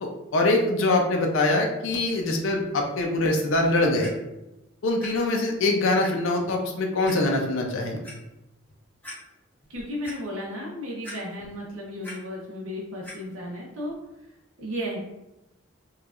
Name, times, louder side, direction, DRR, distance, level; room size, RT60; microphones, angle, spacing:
voice 1, 0.0-4.1 4.8-8.0, left 2 dB, 75° left, 1 dB, 0.5 m, -23 dB
Clock, 4.0-4.1 5.0-5.1 5.5-5.6 6.0-6.1 7.0-7.2 7.8-8.1 8.7-8.8 9.0-9.2 9.6-10.2 11.0-11.6 11.8-12.2 13.0-13.2 13.9-14.0, left 1 dB, 10° left, 0.8 m, -40 dB
voice 2, 9.7-14.0 14.6-15.0, equal, 90° right, -4 dB, 0.7 m, -34 dB
4.3 x 2.3 x 2.4 m, 0.93 s
head